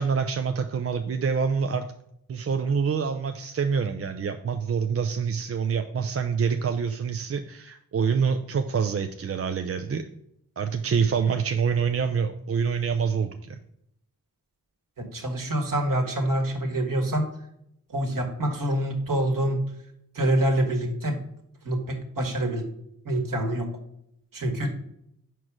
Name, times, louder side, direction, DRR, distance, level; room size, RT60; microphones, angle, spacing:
voice 1, 0.0-1.9 2.3-10.1 10.6-13.6, right 6 dB, 40° right, 6 dB, 0.5 m, -26 dB
voice 2, 15.0-17.3 17.9-19.6 20.1-21.2 21.6-22.7 23.1-23.7 24.3-24.7, right 1 dB, 60° right, 3 dB, 1.8 m, -26 dB
4.8 x 4.6 x 6.0 m, 0.76 s
cardioid pair, 45°, 38 cm